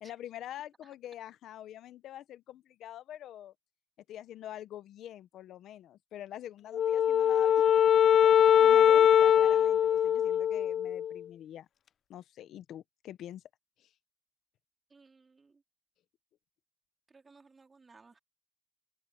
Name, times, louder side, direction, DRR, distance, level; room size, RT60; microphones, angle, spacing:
voice 1, 0.0-3.5 4.1-7.6 8.2-11.7 12.1-13.4 13.8-13.9, left 12 dB, 80° left, 0.9 m, -45 dB
Wind instrument woodwind instrument, 6.7-11.2, left 9 dB, 60° left, 0.3 m, -22 dB
voice 2, 14.9-15.6 17.1-18.2, right 4 dB, 30° right, 4.1 m, -59 dB
cardioid pair, 90°, 0 cm